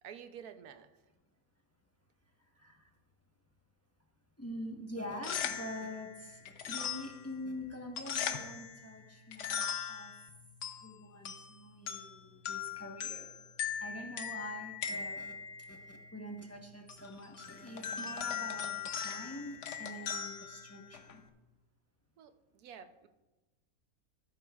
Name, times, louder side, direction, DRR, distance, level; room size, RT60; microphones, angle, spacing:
voice 1, 0.0-0.9 22.2-23.1, right 8 dB, 80° right, 9 dB, 1.2 m, -50 dB
voice 2, 4.4-6.4 6.6-10.1 10.8-13.3 13.8-15.3 15.7-21.2, equal, 10° left, 1 dB, 1.0 m, -45 dB
sound 1, 5.0-21.3, left 7 dB, 60° left, 1.0 m, -41 dB
13.5 x 11.5 x 2.4 m, 1.1 s
omnidirectional pair, 1.6 m